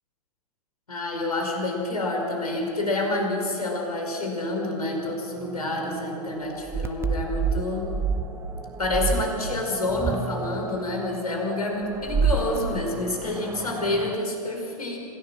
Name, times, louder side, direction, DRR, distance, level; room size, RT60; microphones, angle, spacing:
voice 1, 0.9-7.9 8.8-15.0, left 2 dB, 80° left, 1 dB, 5.2 m, -28 dB
sound 1, 5.0-14.1, right 5 dB, 15° right, 0.9 m, -30 dB
26.5 x 16.5 x 6.2 m, 2.8 s
figure-of-eight pair, 110°, 19 cm